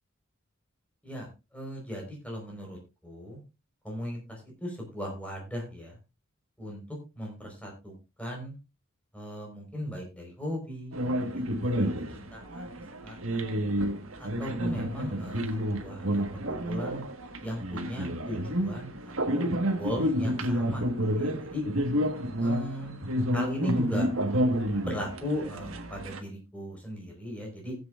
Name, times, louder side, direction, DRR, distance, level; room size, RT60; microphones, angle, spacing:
voice 1, 1.0-2.8 3.0-3.4 3.8-6.0 6.6-6.8 7.1-8.5 9.1-12.6 13.0-13.5 14.2-16.2 16.5-17.0 17.4-20.9 21.1-21.6 22.4-23.0 23.3-24.1 24.8-27.8, equal, 5° left, 0 dB, 4.5 m, -37 dB
sound 1, 10.9-26.2, equal, 80° right, 1.5 m, -30 dB
19.5 x 8.0 x 2.5 m, 0.27 s
head